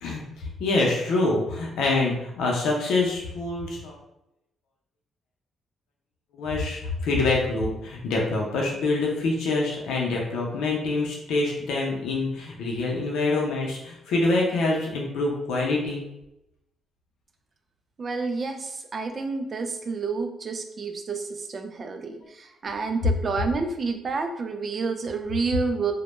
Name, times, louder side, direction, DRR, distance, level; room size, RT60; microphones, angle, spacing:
voice 1, 0.0-4.0 6.3-16.0, left 2 dB, 80° left, -2 dB, 0.5 m, -25 dB
voice 2, 18.0-25.9, right 4 dB, 40° right, 5 dB, 0.3 m, -29 dB
2.1 x 2.1 x 2.9 m, 0.86 s
cardioid pair, 90°, 0 cm